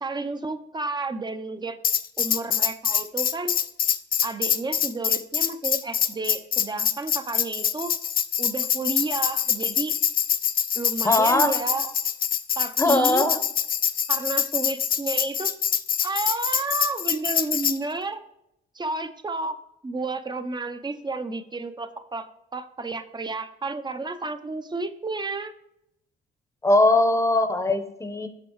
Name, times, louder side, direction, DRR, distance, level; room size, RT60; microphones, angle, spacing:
voice 1, 0.0-1.8 2.2-3.5 4.2-7.9 8.4-9.9 10.7-11.9 12.6-13.3 14.1-15.5 16.0-18.2 18.7-19.6 19.8-25.5, right 3 dB, 20° right, 10 dB, 0.7 m, -31 dB
Tambourine, 1.8-17.8, left 8 dB, 45° left, 0.5 m, -25 dB
voice 2, 11.0-11.6 12.8-13.4 26.6-28.3, left 2 dB, 15° left, 9 dB, 0.9 m, -20 dB
8.2 x 6.2 x 3.1 m, 0.81 s
cardioid pair, 90°, 20 cm